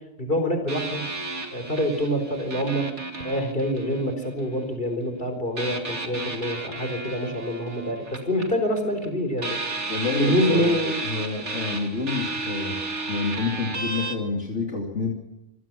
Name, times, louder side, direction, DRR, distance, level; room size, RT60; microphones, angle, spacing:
voice 1, 0.2-1.0 1.5-2.9 3.2-11.0, equal, 45° left, 6 dB, 4.4 m, -26 dB
sound 1, 0.7-4.5 5.6-9.1 9.4-14.2, right 3 dB, 65° right, 3.0 m, -33 dB
voice 2, 9.9-10.8 11.0-12.8 13.1-15.1, left 4 dB, 65° left, 0 dB, 3.0 m, -28 dB
27.0 x 17.0 x 6.1 m, 0.92 s
omnidirectional pair, 1.3 m